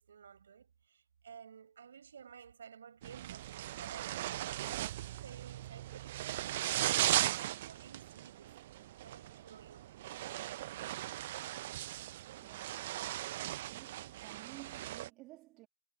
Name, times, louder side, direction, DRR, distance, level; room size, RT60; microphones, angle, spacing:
voice 1, 0.0-10.1, right 7 dB, 75° right, 6.2 m, -54 dB
sound 1, 3.0-15.1, right 15 dB, 60° right, 0.6 m, -38 dB
voice 2, 12.4-13.3 13.7-15.7, right 20 dB, 40° right, 2.4 m, -54 dB
figure-of-eight pair, 100°, 0 cm